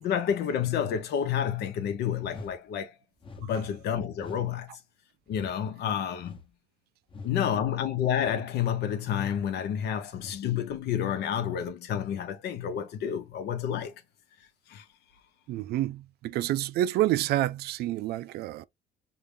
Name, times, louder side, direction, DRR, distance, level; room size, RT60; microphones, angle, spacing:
voice 1, 0.0-2.9 3.4-4.8 5.3-6.4 7.2-13.9 14.7-14.8, left 9 dB, 75° left, 0.9 m, -29 dB
sound 1, 2.2-2.6 3.2-3.5 4.1-4.5 5.3-5.6 6.2-6.5 7.1-7.3 8.1-8.5 9.1-9.4 10.1-10.4, left 3 dB, 30° left, 1.0 m, -45 dB
voice 2, 15.5-18.6, right 14 dB, 70° right, 0.4 m, -28 dB
5.7 x 2.3 x 3.4 m
cardioid pair, 110°, 17 cm